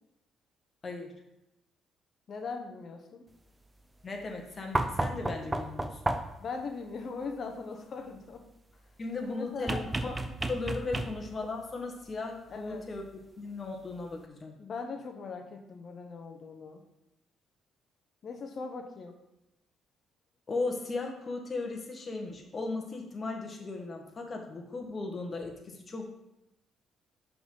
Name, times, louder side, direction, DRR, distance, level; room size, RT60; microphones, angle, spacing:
voice 1, 2.3-3.3 6.4-8.4 9.2-9.8 12.5-12.9 14.6-16.8 18.2-19.2, left 4 dB, 55° left, 4 dB, 0.8 m, -40 dB
voice 2, 4.0-6.0 9.0-10.2 10.5-13.0 13.4-14.5 20.5-26.1, left 3 dB, 40° left, 2 dB, 1.4 m, -37 dB
sound 1, 4.7-6.5 9.7-11.4 13.0-13.1, right 2 dB, 20° right, 0.6 m, -32 dB
5.9 x 3.9 x 5.5 m, 0.88 s
supercardioid pair, 75°, 0 cm